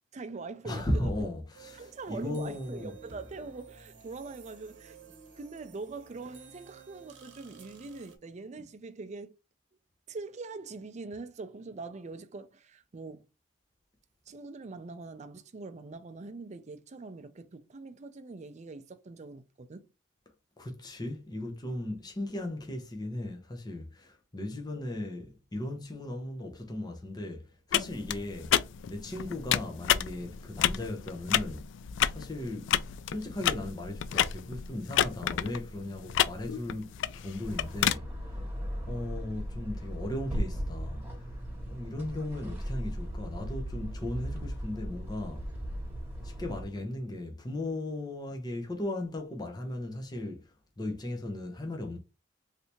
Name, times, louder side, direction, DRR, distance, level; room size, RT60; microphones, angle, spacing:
voice 1, 0.1-1.3 1.7-5.0 5.4-9.3 10.1-13.3 14.3-19.9, right 3 dB, 40° right, 0.5 m, -43 dB
voice 2, 0.6-2.9 20.6-28.6 28.8-31.7 32.1-32.7 33.1-36.9 37.2-38.2 38.9-41.3 41.7-45.5 46.2-52.0, left 1 dB, 20° left, 0.7 m, -37 dB
sound 1, 1.5-8.2, right 5 dB, 80° right, 0.9 m, -53 dB
sound 2, 27.7-38.0, left 10 dB, 85° left, 0.3 m, -30 dB
sound 3, 37.2-46.8, equal, 10° right, 1.4 m, -37 dB
3.3 x 2.7 x 2.9 m
head